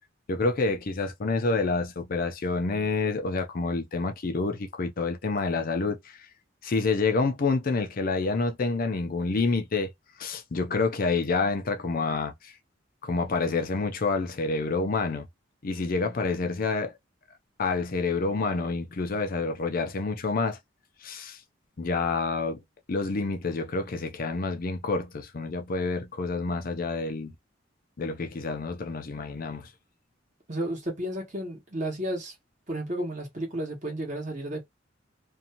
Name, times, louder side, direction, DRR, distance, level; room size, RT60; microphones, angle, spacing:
voice 1, 0.3-6.3 6.6-9.9 10.2-12.5 13.0-15.3 15.6-16.9 17.6-20.6 21.0-21.4 21.8-22.6 22.9-27.3 28.0-29.7, left 3 dB, 50° left, 0.5 m, -28 dB
voice 2, 30.5-32.3 32.7-34.6, right 1 dB, 40° right, 1.1 m, -32 dB
2.6 x 2.3 x 2.8 m
head